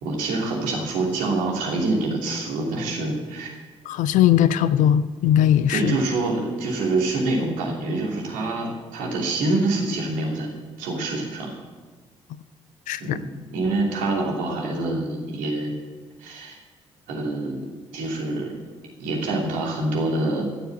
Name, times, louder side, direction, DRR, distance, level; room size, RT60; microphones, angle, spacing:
voice 1, 0.0-3.5 5.7-10.5 10.8-11.5 13.0-13.2 13.5-15.7 16.2-16.6 17.1-18.5 19.0-20.4, right 2 dB, 65° right, -1 dB, 2.9 m, -26 dB
voice 2, 3.9-6.0 12.9-13.2, left 10 dB, 55° left, 15 dB, 0.6 m, -19 dB
14.5 x 7.0 x 8.2 m, 1.3 s
figure-of-eight pair, 45°, 15 cm